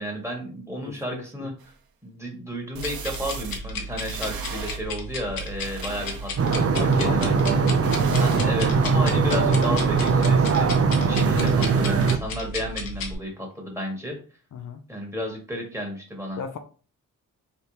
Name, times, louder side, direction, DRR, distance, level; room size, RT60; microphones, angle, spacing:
voice 1, 0.0-1.7 2.0-7.6 8.2-10.7 11.1-14.2 14.9-16.4, equal, 10° right, 1.7 m, -33 dB
voice 2, 0.8-1.5 6.8-7.4 8.1-8.5 9.1-9.8 14.5-14.8 16.4-16.6, left 6 dB, 60° left, 0.6 m, -35 dB
sound 1, 1.6-1.7 2.7-3.6 4.0-4.8 5.4-6.5 7.8-8.4, right 6 dB, 80° right, 0.7 m, -37 dB
sound 2, 2.7-13.1, left 1 dB, 80° left, 1.0 m, -34 dB
sound 3, 6.4-12.2, right 5 dB, 40° right, 0.5 m, -21 dB
4.1 x 3.5 x 2.9 m
cardioid pair, 85°, 35 cm